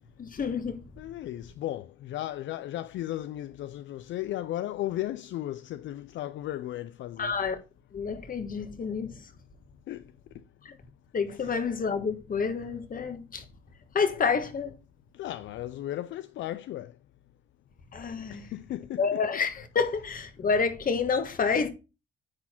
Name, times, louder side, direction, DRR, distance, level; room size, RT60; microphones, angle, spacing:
voice 1, 0.2-0.8 7.2-7.6 7.9-9.1 10.6-10.8 11.1-13.4 13.9-14.7 17.9-18.5 18.9-21.7, left 5 dB, 45° left, 1.5 m, -28 dB
voice 2, 1.0-7.3 9.9-10.0 15.1-16.9 18.3-19.2, left 14 dB, 70° left, 0.4 m, -35 dB
9.7 x 4.2 x 4.4 m
cardioid pair, 90°, 20 cm